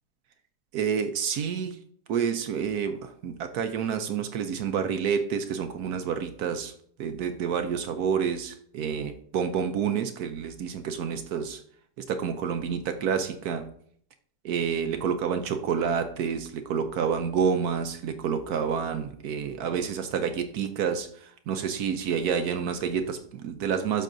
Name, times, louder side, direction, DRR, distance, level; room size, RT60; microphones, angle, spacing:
voice 1, 0.7-1.8 2.1-6.7 7.0-11.6 12.1-13.7 14.4-24.0, right 7 dB, 70° right, 8 dB, 1.1 m, -29 dB
12.0 x 6.1 x 2.6 m, 0.63 s
omnidirectional pair, 1.8 m